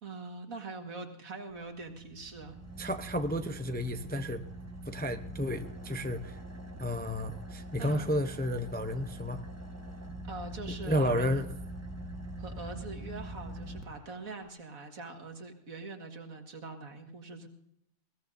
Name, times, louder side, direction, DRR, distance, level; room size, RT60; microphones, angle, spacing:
voice 1, 0.0-2.6 7.8-8.0 10.2-11.3 12.4-17.5, right 3 dB, 80° right, 4 dB, 2.3 m, -43 dB
Car / Idling, 1.5-14.5, right 1 dB, 10° right, 1.1 m, -43 dB
voice 2, 2.8-4.4 4.9-6.4 6.8-9.4 10.8-11.5, equal, 10° left, 7 dB, 0.5 m, -32 dB
21.5 x 17.0 x 2.7 m, 0.75 s
omnidirectional pair, 1.4 m